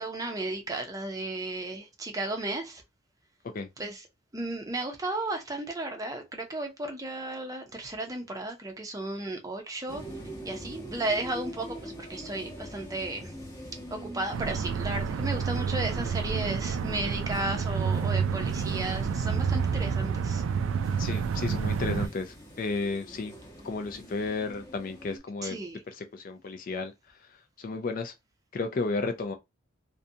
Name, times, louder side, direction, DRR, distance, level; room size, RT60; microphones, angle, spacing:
voice 1, 0.0-2.8 3.8-4.0 4.3-10.0 10.4-13.3 13.9-20.4 25.4-25.8, right 2 dB, 15° right, 0.5 m, -34 dB
sound 1, 9.9-25.2, equal, 20° left, 0.8 m, -45 dB
sound 2, 14.3-22.1, right 6 dB, 75° right, 0.3 m, -29 dB
voice 2, 21.0-23.3 23.6-25.6 25.9-26.9 27.6-28.1 28.5-29.3, left 3 dB, 45° left, 0.4 m, -33 dB
2.5 x 2.1 x 2.7 m
head